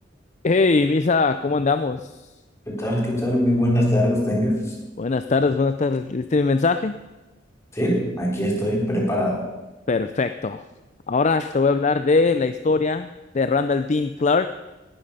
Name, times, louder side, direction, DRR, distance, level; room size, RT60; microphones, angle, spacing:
voice 1, 0.4-2.1 5.0-7.0 9.9-10.6 11.1-14.5, left 4 dB, 35° left, 10 dB, 0.5 m, -21 dB
voice 2, 2.7-4.7 7.7-9.5, equal, 15° left, -2 dB, 3.7 m, -22 dB
18.0 x 11.5 x 5.6 m, 1.1 s
head